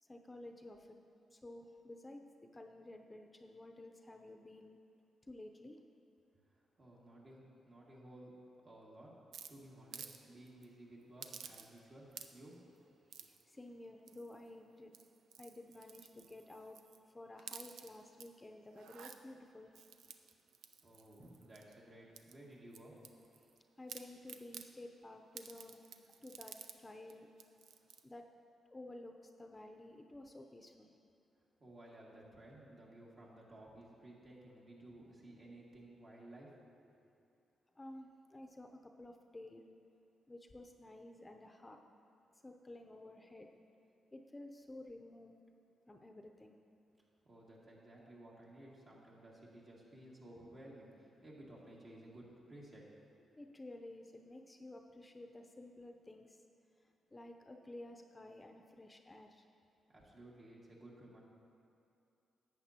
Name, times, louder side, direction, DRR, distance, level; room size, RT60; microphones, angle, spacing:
voice 1, 0.0-1.0 1.3-4.8 5.3-5.8 13.2-14.9 15.4-16.8 17.1-19.7 23.8-27.3 28.0-28.3 28.7-30.9 37.8-39.6 40.3-41.8 42.4-43.5 44.1-45.4 45.9-46.6 53.4-56.4 57.1-59.5, left 1 dB, 25° left, 4 dB, 0.6 m, -53 dB
voice 2, 6.5-8.3 8.6-9.1 9.5-12.5 20.8-22.9 31.6-36.5 36.8-37.0 47.0-52.9 53.2-53.3 59.9-61.2, right 1 dB, 50° right, -5 dB, 2.2 m, -56 dB
sound 1, 9.3-10.2 10.5-10.7 11.2-11.8 12.1-12.5 13.1-13.4 14.1-14.5 14.8-17.0 17.4-18.3 18.7-19.2 19.7-21.8 22.2-23.6 23.9-24.7 25.4-26.8 27.1-27.2 27.4-28.0, right 7 dB, 80° right, 0.4 m, -52 dB
11.0 x 8.1 x 2.9 m, 2.6 s
supercardioid pair, 55°, 0 cm